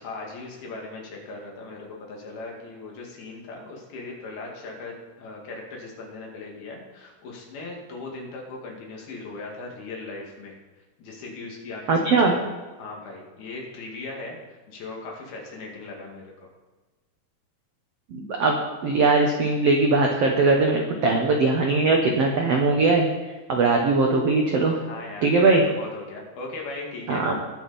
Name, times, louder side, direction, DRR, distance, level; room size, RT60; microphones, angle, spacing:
voice 1, 0.0-10.6 11.0-12.4 12.8-16.3 20.9-21.1 24.6-27.3, left 3 dB, 70° left, -1 dB, 4.0 m, -38 dB
voice 2, 11.9-12.3 18.1-23.1 23.5-24.7 25.2-25.6 27.1-27.4, right 3 dB, 85° right, 1 dB, 1.4 m, -20 dB
20.0 x 6.8 x 4.2 m, 1.3 s
omnidirectional pair, 4.6 m